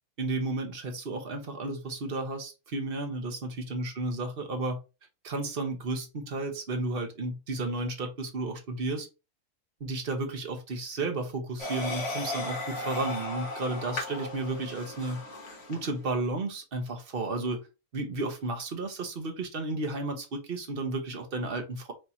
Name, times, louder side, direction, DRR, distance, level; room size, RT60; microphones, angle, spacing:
voice 1, 0.2-4.8 5.2-9.1 9.8-15.2 15.7-17.7 17.9-21.9, right 2 dB, 40° right, 1.1 m, -33 dB
sound 1, 11.6-15.9, left 2 dB, 65° left, 1.6 m, -36 dB
4.9 x 2.8 x 2.8 m
omnidirectional pair, 1.6 m